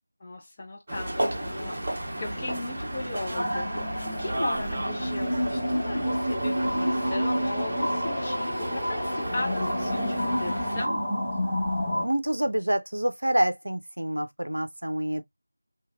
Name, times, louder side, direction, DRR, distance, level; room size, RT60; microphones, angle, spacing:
voice 1, 0.2-11.1, left 2 dB, 20° left, 0.5 m, -37 dB
sound 1, 0.9-10.9, right 1 dB, 25° right, 1.1 m, -33 dB
sound 2, 3.4-12.1, equal, ahead, 0.9 m, -29 dB
voice 2, 12.0-15.2, right 1 dB, 70° right, 0.5 m, -27 dB
3.1 x 2.8 x 2.3 m
figure-of-eight pair, 170°, 0 cm